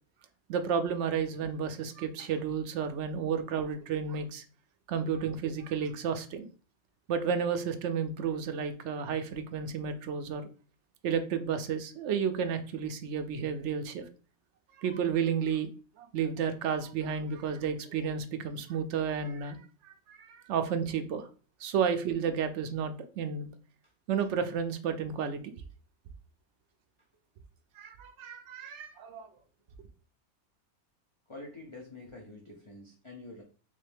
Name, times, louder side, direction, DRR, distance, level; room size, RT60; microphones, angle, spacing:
voice 1, 0.5-4.4 4.9-6.5 7.1-10.5 11.0-14.0 14.8-15.7 16.0-19.6 19.8-21.3 21.6-23.5 24.1-25.4 27.8-29.3, right 7 dB, 65° right, 8 dB, 0.7 m, -32 dB
voice 2, 31.3-33.4, left 2 dB, 35° left, -1 dB, 0.5 m, -47 dB
3.3 x 3.2 x 3.3 m, 0.38 s
omnidirectional pair, 1.5 m